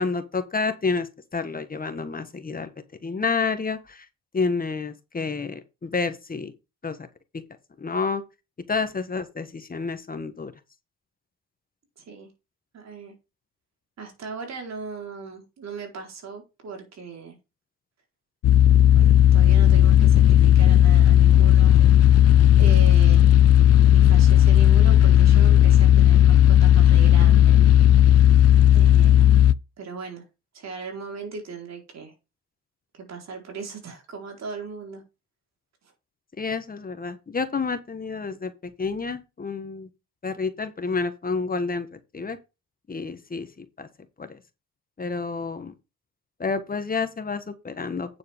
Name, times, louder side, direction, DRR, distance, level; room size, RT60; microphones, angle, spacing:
voice 1, 0.0-2.7 3.0-4.1 4.3-6.5 6.8-7.0 7.3-7.4 7.8-8.2 8.7-10.5 36.4-39.9 40.2-42.4 42.9-43.9 44.2-44.4 45.0-45.7 46.4-48.2, left 4 dB, 30° left, 1.4 m, -29 dB
voice 2, 12.0-12.3 12.7-13.1 14.0-17.4 18.9-21.9 22.6-23.3 23.9-27.6 28.7-29.3 29.8-30.2 30.5-32.1 32.9-35.0, right 5 dB, 60° right, 4.3 m, -38 dB
sound 1, 18.4-29.5, left 11 dB, 55° left, 0.5 m, -15 dB
9.2 x 7.7 x 3.7 m
cardioid pair, 90°, 30 cm